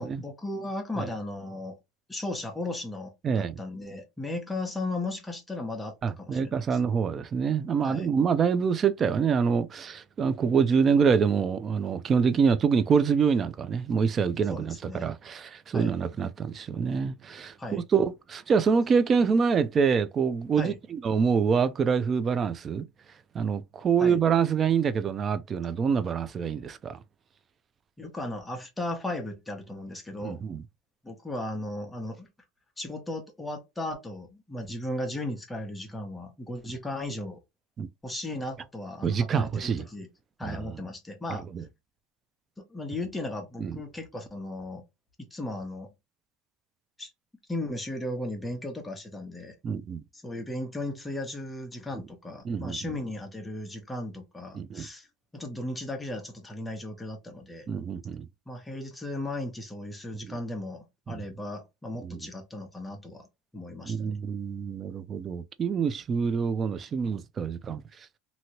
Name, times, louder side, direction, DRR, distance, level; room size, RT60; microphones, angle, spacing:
voice 1, 0.0-1.8 2.1-6.8 7.8-8.1 14.5-15.1 15.7-16.0 17.6-17.8 20.6-20.8 24.0-24.2 28.0-30.4 31.0-32.3 32.8-37.4 38.0-40.1 40.4-41.5 42.6-44.8 45.2-45.9 47.0-47.1 47.5-49.6 50.1-55.1 55.3-57.7 58.5-63.3 63.5-64.2, left 1 dB, 10° left, 0.8 m, -36 dB
voice 2, 3.2-3.5 6.0-22.8 23.3-27.0 30.2-30.6 37.8-37.9 39.0-39.8 40.4-40.6 41.5-41.6 43.6-43.7 49.6-50.0 52.4-52.8 54.5-54.9 57.7-58.3 60.2-60.3 61.1-61.2 62.0-62.2 63.9-67.8, right 6 dB, 30° right, 0.4 m, -26 dB
2.9 x 2.7 x 2.8 m
supercardioid pair, 125°, 0 cm